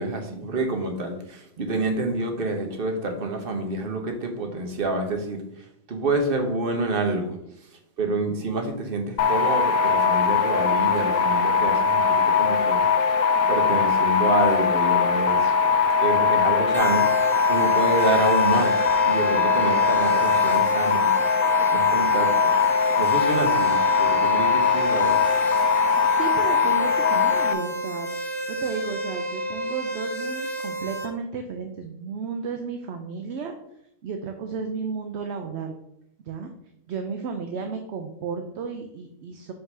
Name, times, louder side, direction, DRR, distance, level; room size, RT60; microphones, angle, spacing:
voice 1, 0.0-7.7 8.0-12.8 13.5-15.5 16.0-17.1 17.5-21.1 21.7-22.6 23.0-25.1, right 2 dB, 45° right, 4 dB, 1.2 m, -28 dB
sound 1, 9.2-27.5, left 5 dB, 90° left, 1.1 m, -21 dB
sound 2, 16.7-31.1, right 1 dB, ahead, 1.2 m, -32 dB
voice 2, 25.9-28.1 28.5-33.5 34.0-35.7 36.3-36.5 36.9-39.5, right 5 dB, 60° right, 5 dB, 0.8 m, -33 dB
5.3 x 3.8 x 5.5 m, 0.77 s
omnidirectional pair, 1.4 m